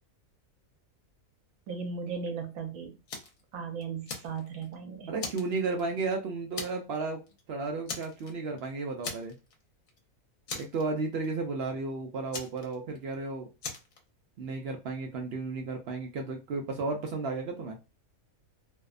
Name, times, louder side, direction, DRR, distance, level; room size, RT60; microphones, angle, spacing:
voice 1, 1.7-3.0 3.5-5.1, right 5 dB, 80° right, 3 dB, 1.1 m, -37 dB
Fire, 3.1-3.4 3.8-4.7 5.2-6.1 6.6-7.0 7.3-7.4 7.9-8.6 9.0-9.6 9.9-10.0 10.5-11.3 12.3-13.1 13.6-14.0, left 4 dB, 70° left, 1.1 m, -39 dB
voice 2, 5.1-7.2 7.5-9.3 10.5-13.5 14.4-17.8, right 3 dB, 65° right, 3 dB, 0.6 m, -33 dB
2.7 x 2.1 x 2.3 m, 0.30 s
omnidirectional pair, 1.5 m